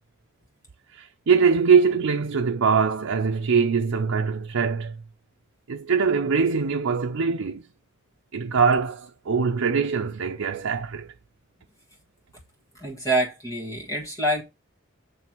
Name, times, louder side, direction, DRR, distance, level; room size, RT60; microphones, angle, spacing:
voice 1, 0.9-5.0 5.7-7.7 8.3-11.1, right 5 dB, 90° right, 0.5 m, -22 dB
voice 2, 12.8-14.4, right 1 dB, 15° left, 1.4 m, -26 dB
7.7 x 3.3 x 4.4 m
head